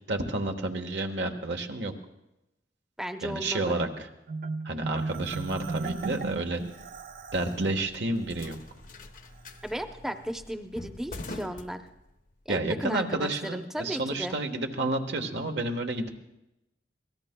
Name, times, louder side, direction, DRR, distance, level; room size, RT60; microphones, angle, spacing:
voice 1, 0.1-1.9 3.2-3.9 4.6-6.6 7.3-8.6 12.5-16.2, right 2 dB, 85° right, 5 dB, 1.3 m, -30 dB
voice 2, 3.0-3.8 9.6-11.8 12.5-14.3, equal, 5° right, 7 dB, 0.7 m, -35 dB
Marimba xylophone, 4.3-7.6, right 3 dB, 50° right, 0.6 m, -35 dB
sound 1, 5.2-12.4, left 2 dB, 50° left, 0.7 m, -46 dB
25.0 x 18.0 x 2.2 m, 0.92 s
head